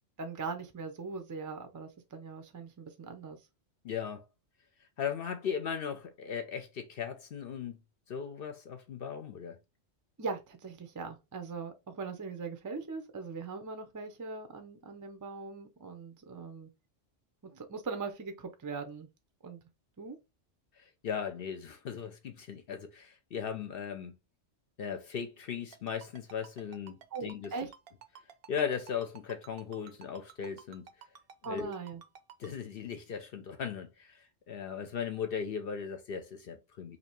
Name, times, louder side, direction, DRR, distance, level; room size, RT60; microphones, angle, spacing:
voice 1, 0.2-3.4 10.2-16.7 17.4-19.1 19.4-19.6 20.0-20.2 27.1-27.7 31.4-32.0, right 4 dB, 30° right, 0.3 m, -40 dB
voice 2, 3.8-4.3 5.0-7.8 8.1-9.6 20.8-24.1 24.8-27.5 28.5-30.9 31.4-31.7 32.4-37.0, left 7 dB, 60° left, 0.7 m, -37 dB
Ringtone, 25.7-32.5, right 8 dB, 60° right, 0.7 m, -51 dB
2.9 x 2.7 x 4.4 m
omnidirectional pair, 1.3 m